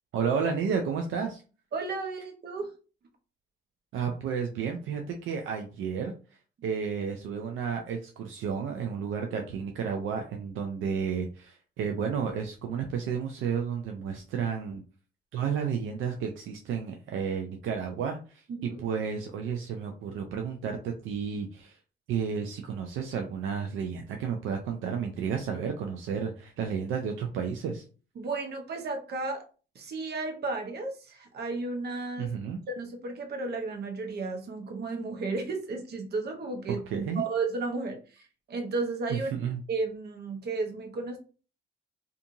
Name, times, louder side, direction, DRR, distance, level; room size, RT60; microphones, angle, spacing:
voice 1, 0.1-1.4 3.9-6.1 6.6-14.8 15.3-21.8 22.1-27.8 32.2-32.6 36.9-37.2 39.1-39.6, right 6 dB, 80° right, 3 dB, 0.4 m, -32 dB
voice 2, 1.7-2.7 18.5-18.8 28.2-29.4 29.7-32.3 32.7-36.8 37.1-39.3 39.7-41.2, right 3 dB, 55° right, 3 dB, 0.8 m, -33 dB
2.7 x 2.5 x 2.5 m, 0.36 s
cardioid pair, 90°, 20 cm